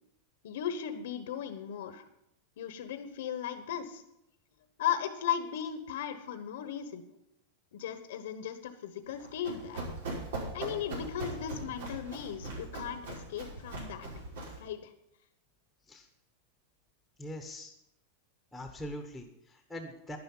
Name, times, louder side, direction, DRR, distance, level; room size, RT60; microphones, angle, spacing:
voice 1, 0.4-2.0 2.6-4.0 4.8-7.0 7.7-9.8 10.5-14.1 14.6-14.9, left 9 dB, 80° left, 9 dB, 1.1 m, -36 dB
Run, 9.1-14.7, right 2 dB, 85° right, 5.6 m, -40 dB
voice 2, 17.2-17.7 18.5-20.2, equal, ahead, 4 dB, 1.2 m, -42 dB
11.5 x 10.5 x 5.6 m, 0.82 s
supercardioid pair, 155°, 0 cm